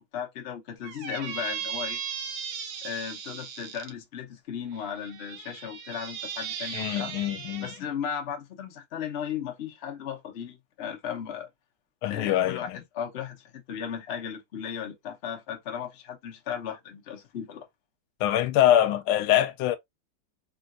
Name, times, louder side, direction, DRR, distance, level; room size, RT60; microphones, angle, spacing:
voice 1, 0.0-2.0 2.8-7.1 7.6-11.5 12.1-17.7, left 8 dB, 70° left, 0.6 m, -36 dB
Squeak, 0.8-3.9 4.7-7.8, right 8 dB, 85° right, 1.5 m, -37 dB
voice 2, 6.7-7.7 12.0-12.8 18.2-19.8, left 12 dB, 85° left, 1.4 m, -24 dB
3.7 x 2.3 x 2.4 m
omnidirectional pair, 2.2 m